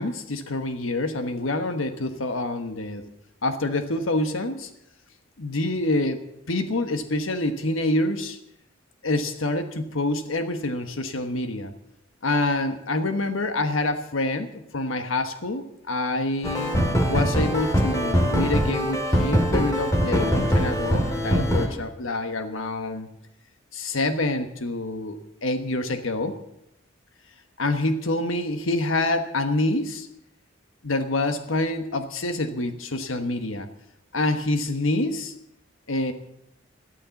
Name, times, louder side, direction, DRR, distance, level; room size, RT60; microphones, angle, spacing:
voice 1, 0.0-3.0 3.4-4.7 5.4-8.4 9.0-11.7 12.2-16.7 17.1-23.1 23.7-26.4 27.6-30.1 30.8-33.7 34.1-35.3 35.9-36.1, left 2 dB, 90° left, 8 dB, 1.3 m, -26 dB
sound 1, 16.4-21.7, equal, 15° left, 2.4 m, -22 dB
14.0 x 13.0 x 7.1 m, 0.80 s
head